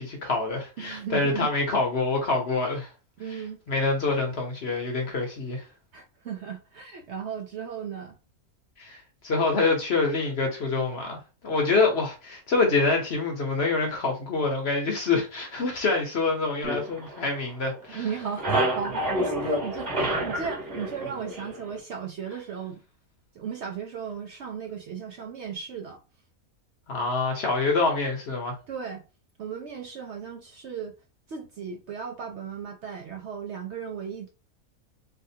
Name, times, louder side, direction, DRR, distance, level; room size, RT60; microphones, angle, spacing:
voice 1, 0.0-2.9 3.7-5.6 8.8-18.0 26.9-28.5, left 3 dB, 50° left, 0.9 m, -26 dB
voice 2, 0.8-1.5 3.2-3.6 5.9-8.2 17.9-22.8 23.3-26.0 28.7-29.0 29.4-30.9 31.3-34.3, right 7 dB, 65° right, 0.7 m, -36 dB
sound 1, 16.6-17.8 18.1-21.8, right 1 dB, 40° right, 1.7 m, -29 dB
3.5 x 2.4 x 2.7 m
omnidirectional pair, 1.5 m